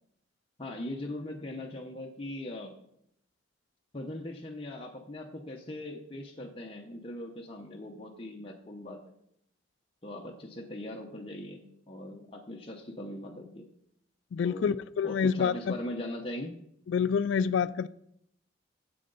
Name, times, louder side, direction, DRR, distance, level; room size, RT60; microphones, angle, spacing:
voice 1, 0.6-2.7 3.9-9.1 10.0-13.7 14.4-14.8 15.0-16.5, left 1 dB, 30° left, 0 dB, 0.8 m, -40 dB
voice 2, 14.3-15.7 16.9-17.9, left 6 dB, 70° left, 15 dB, 0.3 m, -27 dB
10.0 x 7.7 x 4.0 m, 0.73 s
head